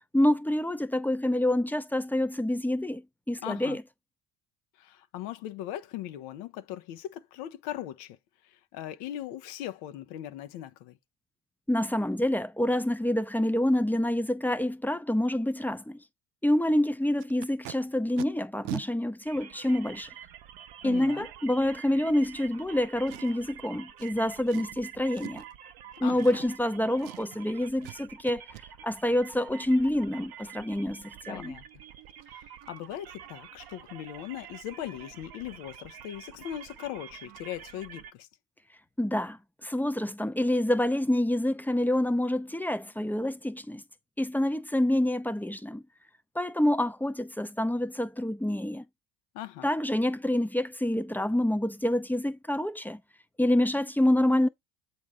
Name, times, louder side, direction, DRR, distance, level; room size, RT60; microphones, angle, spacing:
voice 1, 0.1-3.8 11.7-16.0 16.4-20.1 20.8-25.4 26.0-28.4 28.8-31.6 39.0-43.8 44.2-45.8 46.4-48.8 49.6-53.0 53.4-54.5, left 1 dB, 5° left, 0.4 m, -27 dB
voice 2, 3.4-3.8 4.8-8.2 8.7-11.0 20.8-21.3 26.0-26.4 31.3-31.6 32.3-38.3 49.3-49.7, left 12 dB, 85° left, 0.8 m, -39 dB
Packing tape duct tape, 17.2-17.7 18.2-18.3 18.6-18.8 19.6-19.7 23.1-23.5 24.0-24.1 24.5-24.8 25.1-25.5 26.2-26.7 27.0-27.4 27.8-28.0 28.3-28.6 31.7-31.8 32.1-32.3 32.6-32.8 33.0-33.3 33.6-33.7, right 19 dB, 90° right, 0.5 m, -42 dB
sound 1, 19.3-38.1, right 9 dB, 60° right, 0.8 m, -48 dB
7.3 x 2.8 x 4.8 m
supercardioid pair, 85°, 43 cm